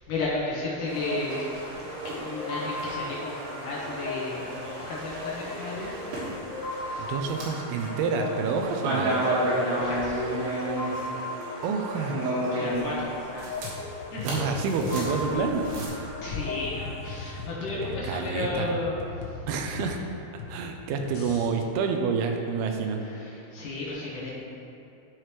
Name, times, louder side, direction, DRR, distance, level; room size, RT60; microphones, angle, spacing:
voice 1, 0.1-1.6 2.0-5.9 6.8-7.0 9.7-10.2 12.5-13.5 14.1-14.3 16.2-19.3 23.0-24.4, left 2 dB, 70° left, -6 dB, 2.3 m, -33 dB
sound 1, 0.9-17.5, left 2 dB, 50° left, 1.4 m, -38 dB
sound 2, 0.9-15.9, right 1 dB, 70° right, 3.2 m, -33 dB
voice 2, 7.0-9.2 11.6-12.2 13.5-13.6 14.2-15.9 17.7-18.8 19.5-20.0 20.5-23.0, right 5 dB, 85° right, 4 dB, 2.5 m, -28 dB
sound 3, 13.6-21.5, left 4 dB, 90° left, 2.8 m, -40 dB
12.0 x 4.9 x 3.1 m, 2.8 s
omnidirectional pair, 4.5 m